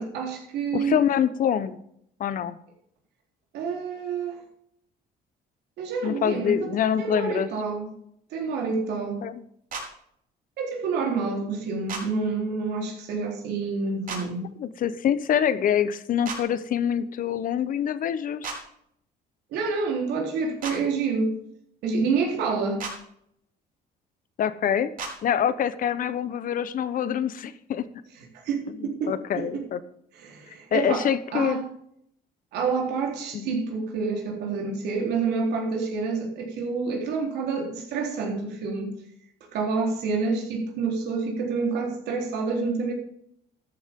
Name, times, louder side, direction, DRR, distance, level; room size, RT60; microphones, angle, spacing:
voice 1, 0.0-1.0 3.5-4.4 5.8-7.9 8.3-9.2 10.6-14.4 19.5-21.3 21.8-22.8 28.3-29.7 30.1-31.6 32.5-38.9 39.5-42.9, right 4 dB, 80° right, 4.0 m, -28 dB
voice 2, 0.7-1.8 2.2-2.6 6.0-7.5 9.2-9.4 14.6-18.6 24.4-24.9 25.2-27.8 28.8-29.8 30.7-31.6 33.3-33.6, left 9 dB, 55° left, 1.0 m, -25 dB
sound 1, 9.7-9.9 11.9-12.0 14.1-14.2 16.2-16.4 18.4-18.6 20.6-20.8 22.8-22.9 25.0-25.1, right 4 dB, 55° right, 4.8 m, -33 dB
13.0 x 12.0 x 3.7 m
cardioid pair, 110°, 17 cm